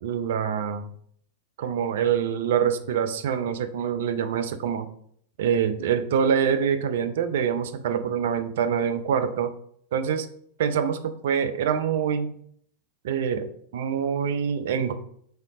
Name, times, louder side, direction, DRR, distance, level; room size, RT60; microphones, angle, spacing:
voice 1, 0.0-0.8 1.6-4.9 5.4-9.5 9.9-10.3 10.6-12.3 13.0-14.9, right 7 dB, 55° right, 9 dB, 0.4 m, -25 dB
3.5 x 2.7 x 3.7 m, 0.64 s
figure-of-eight pair, 90°, 0 cm